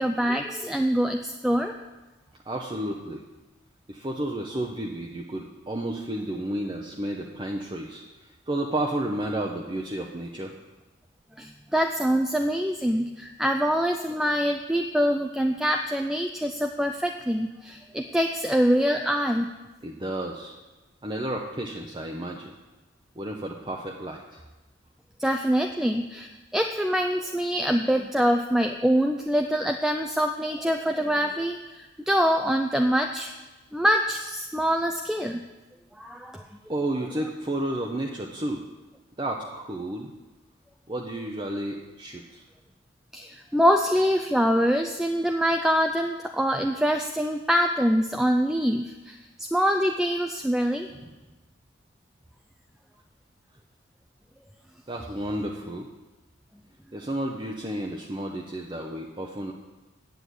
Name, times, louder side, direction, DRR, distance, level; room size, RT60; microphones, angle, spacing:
voice 1, 0.0-1.7 11.4-19.5 25.2-33.3 33.7-35.4 36.0-36.4 43.1-50.9, equal, 5° right, 4 dB, 0.4 m, -24 dB
voice 2, 2.4-3.2 3.9-10.5 19.8-20.6 21.0-22.6 23.2-24.4 36.7-38.7 39.2-40.1 40.9-42.4 50.9-51.2 54.9-55.9 56.9-59.5, right 1 dB, 25° right, 0 dB, 0.7 m, -32 dB
9.2 x 7.8 x 8.2 m, 1.1 s
head